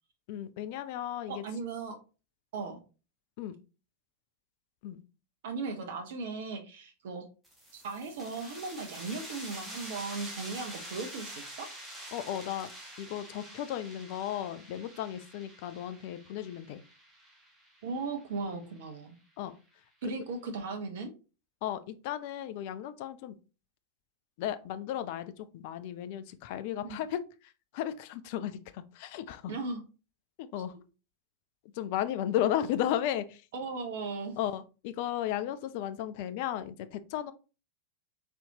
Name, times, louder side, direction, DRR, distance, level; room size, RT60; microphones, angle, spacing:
voice 1, 0.3-1.4 3.4-3.6 4.8-5.0 12.1-12.7 13.0-16.8 19.4-19.5 21.6-23.4 24.4-29.5 30.4-30.8 31.7-33.5 34.4-37.3, left 11 dB, 50° left, 12 dB, 0.4 m, -35 dB
voice 2, 1.3-2.0 2.5-2.8 5.4-7.2 7.7-11.7 17.8-19.2 20.0-21.1 26.8-27.0 29.5-29.8 33.5-34.4, right 4 dB, 55° right, 5 dB, 0.7 m, -37 dB
sound 1, 7.4-18.8, right 1 dB, 5° right, 1.3 m, -47 dB
4.1 x 3.4 x 2.7 m, 0.33 s
figure-of-eight pair, 90°, 0 cm